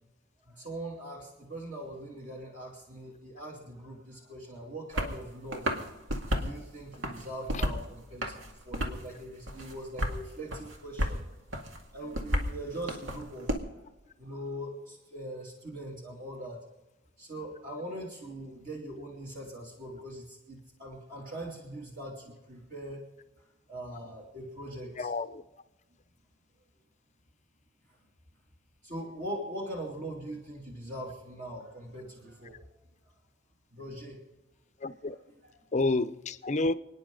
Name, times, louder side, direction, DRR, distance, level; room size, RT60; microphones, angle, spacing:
voice 1, 0.4-5.8 6.3-11.2 11.9-13.8 14.2-16.6 17.2-23.0 23.7-25.1 28.8-32.7 33.7-34.2 35.1-35.6, right 1 dB, 45° right, 2.8 m, -41 dB
sound 1, 4.9-5.2 5.5-6.5 6.9-7.8 8.2-9.1 9.5-10.2 10.5-11.2 11.5-13.5, equal, 85° right, 2.2 m, -32 dB
voice 2, 25.0-25.4 34.8-35.2 35.7-36.7, left 2 dB, 40° left, 0.7 m, -29 dB
30.0 x 10.0 x 3.9 m
head